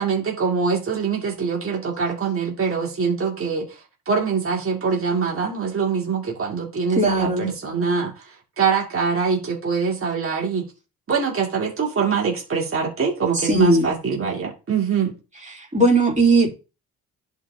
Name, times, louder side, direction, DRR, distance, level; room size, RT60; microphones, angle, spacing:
voice 1, 0.0-10.7 11.1-15.1, right 5 dB, 40° right, 2.3 m, -24 dB
voice 2, 7.0-7.5 13.4-13.9 15.5-16.6, right 2 dB, 20° right, 2.9 m, -18 dB
10.5 x 4.5 x 2.7 m
supercardioid pair, 65°, 35 cm